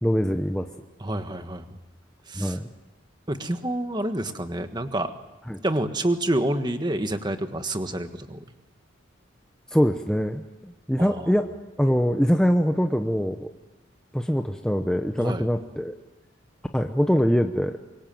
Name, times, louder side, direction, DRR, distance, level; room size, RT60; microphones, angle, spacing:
voice 1, 0.0-0.7 2.4-2.7 5.5-5.6 9.7-11.5 11.8-13.5 14.1-15.9 16.7-17.8, equal, 5° left, 5 dB, 0.9 m, -23 dB
voice 2, 1.0-1.6 2.3-2.6 3.3-5.1 5.6-8.4 11.0-11.3 15.2-15.5, right 1 dB, 20° right, 8 dB, 1.5 m, -28 dB
26.0 x 23.0 x 7.7 m, 1.2 s
head